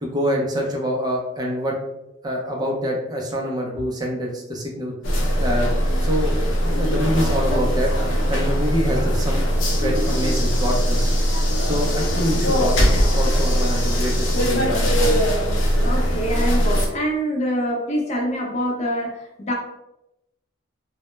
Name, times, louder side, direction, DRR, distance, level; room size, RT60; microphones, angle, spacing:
voice 1, 0.0-1.7 2.2-4.9 5.4-5.7 6.0-6.3 6.7-7.9 8.3-9.4 9.7-11.1 11.6-15.2, equal, 20° right, -1 dB, 0.4 m, -26 dB
sound 1, 5.0-16.9, equal, 90° left, 0.5 m, -20 dB
voice 2, 15.8-19.5, equal, 35° left, 0 dB, 0.5 m, -25 dB
2.1 x 2.0 x 3.0 m, 0.87 s
head